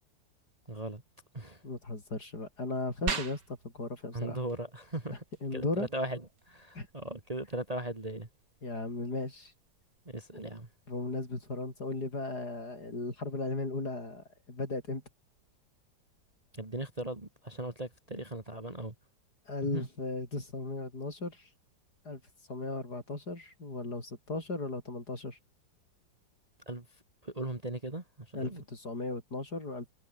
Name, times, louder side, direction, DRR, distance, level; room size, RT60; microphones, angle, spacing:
voice 1, 0.7-1.0 1.3-1.6 4.1-5.2 5.5-6.2 6.5-8.3 10.1-10.7 16.5-18.9 19.7-19.9 26.7-26.9 27.2-28.6, right 1 dB, 20° right, 2.2 m, -38 dB
voice 2, 1.6-4.4 5.4-5.9 6.7-6.9 8.6-9.5 10.9-15.0 19.5-21.5 22.0-22.2 22.5-25.4 28.3-29.8, left 2 dB, 55° left, 6.3 m, -36 dB
sound 1, 3.1-13.1, right 5 dB, 60° right, 2.9 m, -45 dB
omnidirectional pair, 2.1 m